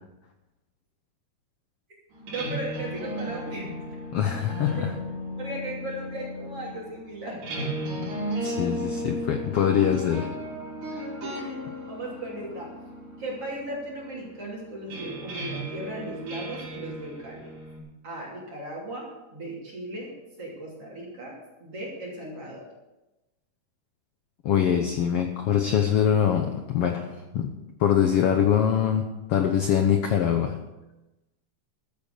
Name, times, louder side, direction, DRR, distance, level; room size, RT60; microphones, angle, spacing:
sound 1, 2.1-17.8, equal, 75° right, 5.5 m, -36 dB
voice 1, 2.3-3.8 4.7-4.9 5.4-7.9 11.2-12.7 13.2-17.5 18.0-20.1 20.4-22.6, right 1 dB, 45° right, -4 dB, 3.7 m, -37 dB
voice 2, 4.1-4.9 8.0-8.1 8.4-10.3 10.9-11.1 24.4-27.5 27.8-30.6, left 9 dB, 80° left, 5 dB, 1.3 m, -24 dB
14.0 x 8.3 x 6.8 m, 1.0 s
omnidirectional pair, 3.8 m